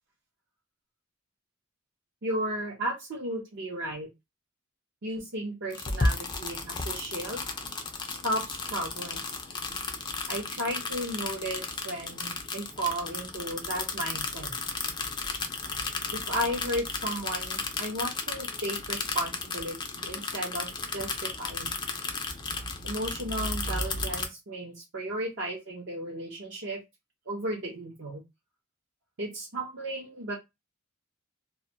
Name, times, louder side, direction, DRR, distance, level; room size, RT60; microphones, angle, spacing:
voice 1, 2.2-4.1 5.0-7.4 8.1-9.4 10.3-14.5 16.1-21.7 22.8-26.8 27.3-28.2 29.2-30.3, right 1 dB, 60° right, -2 dB, 0.6 m, -34 dB
sound 1, 5.7-24.3, left 3 dB, 20° left, 0.4 m, -34 dB
2.2 x 2.1 x 2.6 m, 0.22 s
head